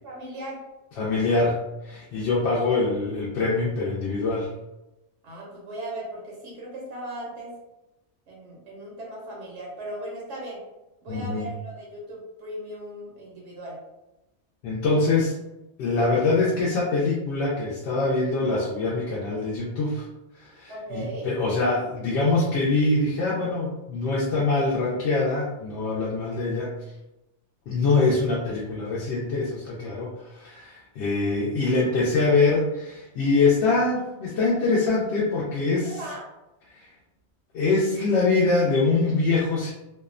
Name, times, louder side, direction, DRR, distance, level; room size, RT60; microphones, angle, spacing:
voice 1, 0.0-0.6 5.2-7.5 8.3-10.6 11.0-13.8 20.7-21.3 35.8-36.2, right 1 dB, 80° right, -3 dB, 1.0 m, -37 dB
voice 2, 1.0-4.5 11.1-11.5 14.6-15.3 15.8-20.1 20.4-26.7 27.7-35.9 36.8-36.9 37.5-39.7, left 3 dB, 75° left, -5 dB, 0.8 m, -24 dB
2.6 x 2.0 x 2.4 m, 0.96 s
omnidirectional pair, 1.2 m